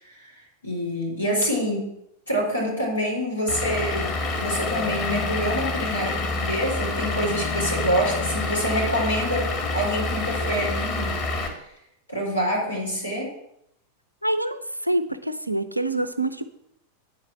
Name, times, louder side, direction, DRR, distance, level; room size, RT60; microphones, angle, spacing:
voice 1, 0.1-1.9 2.3-4.1 4.4-11.2 12.1-13.3, equal, 85° left, -3 dB, 4.4 m, -26 dB
Vehicle / Engine, 3.5-11.5, left 3 dB, 35° left, 2.1 m, -27 dB
voice 2, 14.2-16.5, right 1 dB, 85° right, 10 dB, 0.6 m, -26 dB
9.4 x 4.8 x 7.6 m, 0.78 s
figure-of-eight pair, 90°, 0 cm